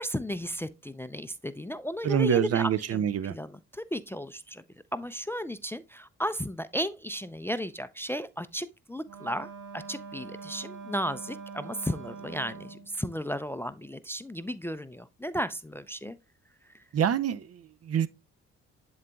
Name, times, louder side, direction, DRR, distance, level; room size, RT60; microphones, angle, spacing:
voice 1, 0.0-4.6 4.9-16.2, equal, 5° left, 0.4 m, -34 dB
voice 2, 2.0-3.3 16.9-18.1, right 9 dB, 45° right, 0.6 m, -26 dB
Wind instrument woodwind instrument, 9.0-12.9, right 5 dB, 70° right, 2.7 m, -43 dB
11.0 x 4.0 x 2.3 m
supercardioid pair, 55°, 33 cm